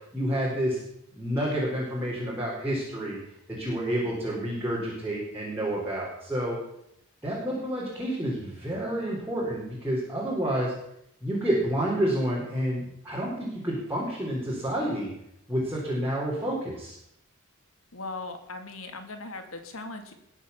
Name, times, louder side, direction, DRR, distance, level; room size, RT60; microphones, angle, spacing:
voice 1, 0.1-0.8 1.1-3.2 3.5-6.6 7.2-10.7 11.2-15.1 15.5-17.0, right 1 dB, 10° right, -6 dB, 4.2 m, -29 dB
voice 2, 17.9-20.1, left 3 dB, 90° left, 6 dB, 2.4 m, -38 dB
21.0 x 7.3 x 7.2 m, 0.77 s
head